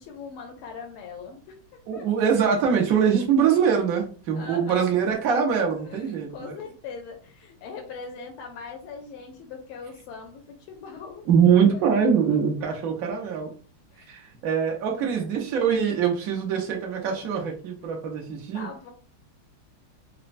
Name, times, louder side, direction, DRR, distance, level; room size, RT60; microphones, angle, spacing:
voice 1, 0.0-2.1 4.3-4.9 5.7-11.2 13.9-14.1 17.2-17.4 17.8-17.9 18.5-18.9, left 5 dB, 90° left, 2 dB, 1.5 m, -41 dB
voice 2, 1.9-6.5 11.3-13.5 14.1-18.7, right 7 dB, 65° right, 1 dB, 0.8 m, -23 dB
4.2 x 2.1 x 2.5 m, 0.39 s
omnidirectional pair, 2.3 m